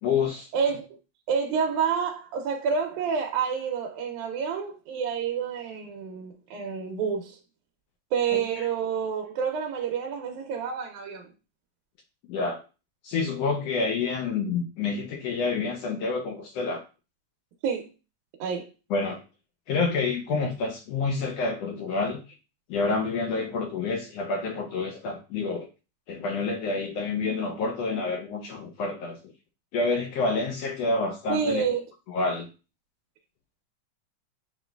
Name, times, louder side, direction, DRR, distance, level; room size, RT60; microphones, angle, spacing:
voice 1, 0.0-0.5 8.3-8.7 12.3-12.6 13.0-16.8 18.9-19.2 19.7-22.2 22.7-25.7 26.1-29.2 29.7-31.6 32.1-32.5, left 4 dB, 75° left, 1.5 m, -28 dB
voice 2, 0.5-0.9 1.3-7.4 8.1-11.3 17.6-17.9 18.4-18.7 31.3-31.8, right 6 dB, 85° right, 2.0 m, -28 dB
7.6 x 3.0 x 2.2 m
omnidirectional pair, 3.4 m